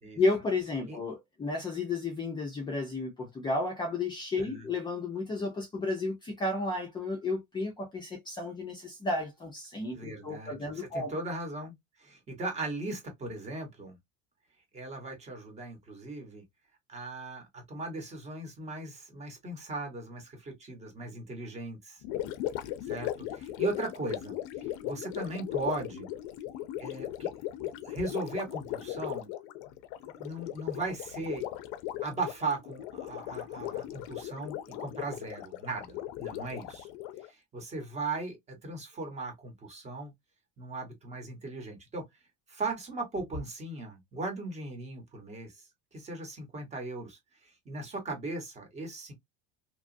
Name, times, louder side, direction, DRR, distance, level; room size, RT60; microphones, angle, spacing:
voice 1, 0.2-11.1, left 3 dB, 15° left, 0.5 m, -32 dB
voice 2, 9.9-14.0 14.7-16.4 16.9-22.0 22.8-26.1 26.8-27.3 27.6-29.3 30.0-31.4 32.0-36.9 37.3-40.1 40.6-42.0 42.5-49.1, right 2 dB, 20° right, 1.0 m, -38 dB
Gurgling, 22.0-37.3, left 13 dB, 70° left, 0.5 m, -38 dB
2.9 x 2.3 x 2.6 m
cardioid pair, 165°, 31 cm